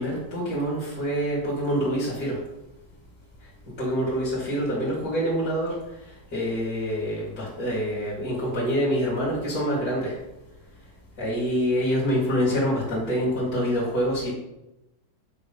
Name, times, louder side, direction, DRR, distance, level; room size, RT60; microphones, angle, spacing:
voice 1, 0.0-2.4 3.8-5.7 6.3-10.1 11.2-14.3, equal, 30° left, -8 dB, 2.2 m, -26 dB
7.8 x 3.8 x 5.3 m, 0.93 s
omnidirectional pair, 4.2 m